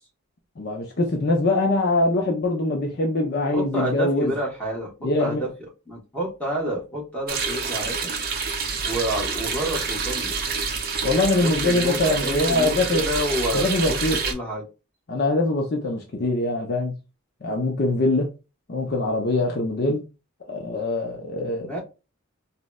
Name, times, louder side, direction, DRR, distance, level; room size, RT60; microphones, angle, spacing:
voice 1, 0.6-4.3 5.0-5.5 11.0-13.1 13.5-14.2 15.1-16.9 17.4-18.3 18.7-20.0 20.5-21.7, left 2 dB, 45° left, 0.5 m, -23 dB
voice 2, 3.5-4.9 5.2-5.5 5.9-8.1 8.8-10.3 11.4-14.0 14.3-14.6 21.4-21.8, equal, 5° left, 1.0 m, -29 dB
sound 1, 7.3-14.3, right 5 dB, 45° right, 0.5 m, -27 dB
3.8 x 2.0 x 2.2 m
head